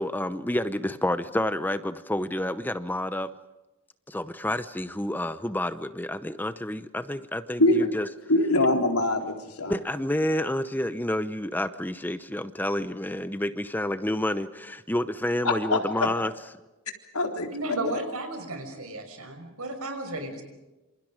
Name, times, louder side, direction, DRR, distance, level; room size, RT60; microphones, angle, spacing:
voice 1, 0.0-3.3 4.1-8.1 9.6-16.3, left 1 dB, 10° left, 12 dB, 0.7 m, -29 dB
voice 2, 8.3-9.7 15.4-15.8 17.1-17.5 17.9-18.0, left 2 dB, 85° left, 3 dB, 3.8 m, -23 dB
voice 3, 17.5-20.4, right 2 dB, 80° right, 6 dB, 5.7 m, -34 dB
27.5 x 27.0 x 5.1 m, 1.1 s
head